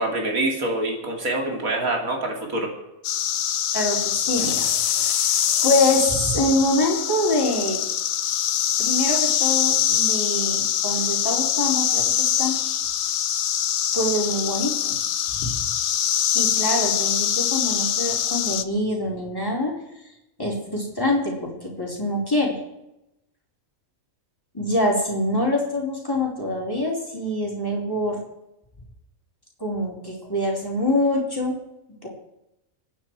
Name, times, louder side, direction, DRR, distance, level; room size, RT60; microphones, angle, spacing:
voice 1, 0.0-2.7, right 2 dB, 80° right, 2 dB, 3.2 m, -25 dB
sound 1, 3.0-18.6, left 10 dB, 75° left, 1.2 m, -23 dB
voice 2, 3.7-7.8 8.8-12.6 13.9-15.0 15.4-15.6 16.3-19.7 20.4-22.6 24.5-28.2 29.6-31.6 32.0-32.1, left 1 dB, 15° left, -3 dB, 4.2 m, -25 dB
24.5 x 9.7 x 4.7 m, 0.88 s
omnidirectional pair, 1.4 m